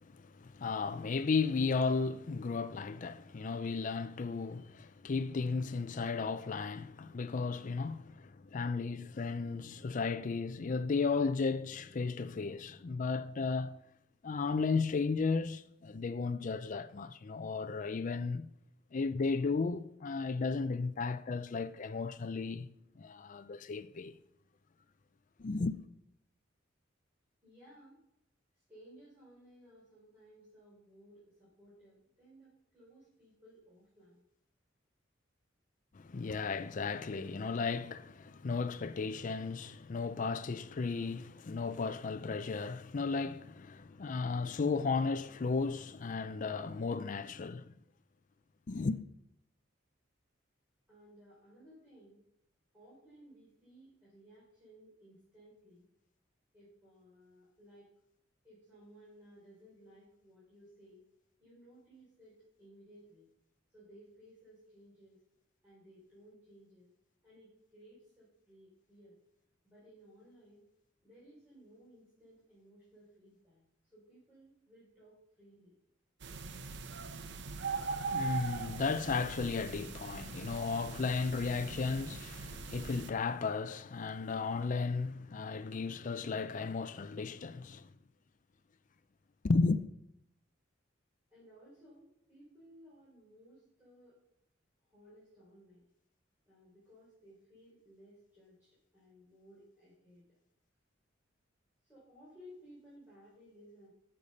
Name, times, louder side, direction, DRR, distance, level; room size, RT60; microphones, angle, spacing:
voice 1, 0.0-13.8 14.2-18.5 18.9-22.7 23.0-24.1 25.4-25.8 35.9-47.7 48.7-49.0 77.7-87.9 89.4-89.8, left 4 dB, 40° left, 0.4 m, -34 dB
voice 2, 27.4-28.0 28.5-34.3 50.9-52.2 52.7-55.9 56.5-57.9 58.4-61.0 61.4-63.3 63.7-65.2 65.6-66.9 67.2-69.2 69.6-70.6 71.0-75.7 91.3-94.2 94.8-95.9 96.5-100.4 101.8-103.9, equal, 10° right, 3.8 m, -59 dB
sound 1, 76.2-83.1, right 4 dB, 65° right, 0.7 m, -41 dB
10.5 x 6.7 x 5.4 m
head